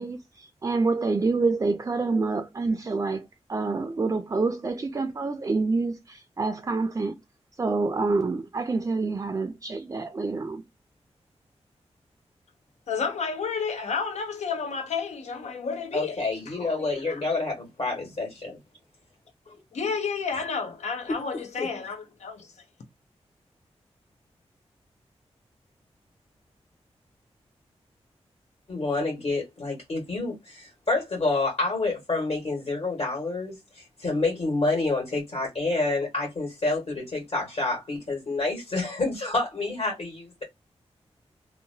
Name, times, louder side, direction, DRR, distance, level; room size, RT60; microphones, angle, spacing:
voice 1, 0.0-7.2 7.6-10.6, right 3 dB, 30° right, 0.4 m, -27 dB
voice 2, 12.9-17.2 19.7-22.5, left 5 dB, 90° left, 0.7 m, -31 dB
voice 3, 15.9-18.6 19.5-19.6 21.1-21.2 21.6-21.7 28.7-40.4, left 3 dB, 60° left, 1.5 m, -28 dB
2.8 x 2.2 x 2.6 m
cardioid pair, 65°, 11 cm